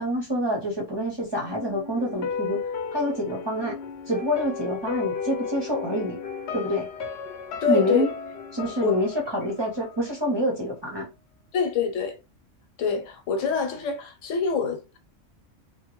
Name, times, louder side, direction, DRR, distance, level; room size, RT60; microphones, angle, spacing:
voice 1, 0.0-2.6 2.9-3.7 4.1-6.2 6.5-6.9 7.7-8.1 8.5-11.1, equal, 25° right, 0.6 m, -27 dB
sound 1, 1.4-10.4 10.7-10.8, left 5 dB, 65° left, 0.8 m, -35 dB
voice 2, 7.6-8.1 8.8-9.1 11.5-12.2 12.8-15.0, left 6 dB, 80° left, 1.1 m, -25 dB
2.9 x 2.2 x 2.9 m
omnidirectional pair, 1.3 m